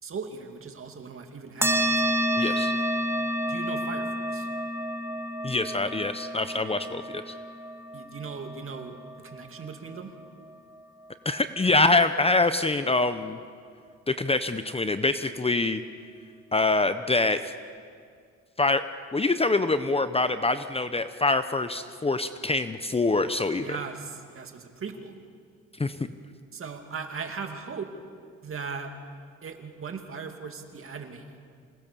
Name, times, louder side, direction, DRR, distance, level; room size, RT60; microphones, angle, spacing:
voice 1, 0.0-1.9 2.4-2.8 3.5-4.5 7.9-10.1 23.6-25.1 26.5-27.9 28.4-28.9 29.4-31.4, right 5 dB, 45° right, 5 dB, 2.6 m, -38 dB
sound 1, 1.6-10.5, equal, 10° right, 2.1 m, -30 dB
voice 2, 2.4-2.7 5.4-7.3 11.2-13.4 14.1-15.8 16.5-17.5 18.6-18.8 19.1-23.8 25.8-26.1, left 2 dB, 20° left, 11 dB, 0.8 m, -25 dB
26.5 x 18.5 x 6.9 m, 2.2 s
cardioid pair, 90°, 30 cm